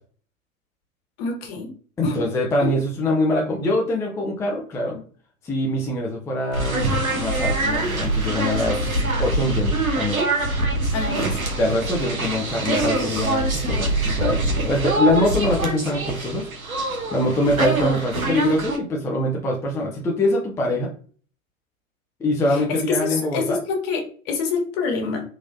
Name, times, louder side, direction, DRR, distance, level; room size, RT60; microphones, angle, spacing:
voice 1, 1.2-1.7 2.0-2.2 2.6-2.7 10.9-11.4 22.5-25.2, left 4 dB, 45° left, 2 dB, 1.4 m, -26 dB
voice 2, 2.0-5.0 5.4-8.9 9.2-10.2 11.6-16.5 17.1-20.9 22.2-23.6, left 1 dB, 10° left, -1 dB, 0.5 m, -23 dB
sound 1, 6.5-18.8, right 2 dB, 85° right, 1.1 m, -24 dB
3.7 x 3.0 x 2.6 m, 0.43 s
figure-of-eight pair, 95°, 41 cm